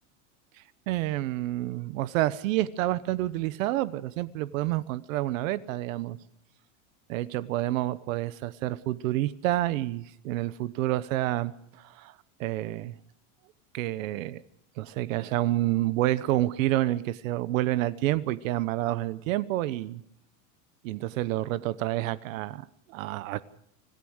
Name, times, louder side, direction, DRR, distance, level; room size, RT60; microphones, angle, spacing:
voice 1, 0.9-6.2 7.1-12.1 12.4-12.9 13.7-14.4 14.8-20.0 20.8-23.4, right 15 dB, 70° right, 16 dB, 1.0 m, -29 dB
25.0 x 16.0 x 6.4 m, 0.73 s
supercardioid pair, 150°, 41 cm